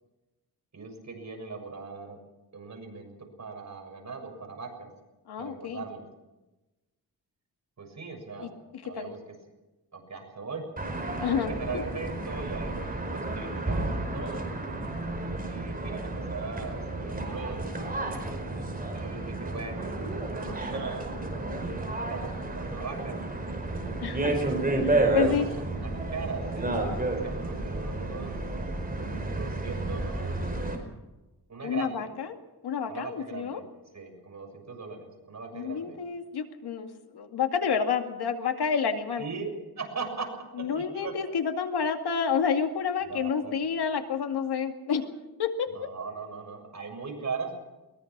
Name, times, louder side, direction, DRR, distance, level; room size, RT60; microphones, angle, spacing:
voice 1, 0.7-2.2 2.5-4.9 5.4-6.0 7.8-8.6 8.8-9.2 9.9-10.6 11.2-14.5 15.5-17.6 18.9-20.0 20.3-21.1 21.8-23.2 25.2-26.8 27.1-28.3 29.3-30.5 31.5-32.1 32.9-33.7 33.9-36.0 39.2-39.5 39.8-40.3 40.7-41.4 43.0-43.5 45.7-47.5, right 4 dB, 45° right, 3 dB, 6.8 m, -39 dB
voice 2, 5.3-5.8 8.4-8.5 9.0-9.1 11.2-11.8 24.0-24.4 24.8-25.5 31.6-32.4 32.6-33.6 35.5-39.3 40.6-45.1 45.4-45.9, left 6 dB, 90° left, 6 dB, 2.3 m, -29 dB
sound 1, 10.8-30.8, right 2 dB, 25° right, 5.0 m, -31 dB
22.5 x 21.0 x 6.1 m, 1.1 s
cardioid pair, 100°, 38 cm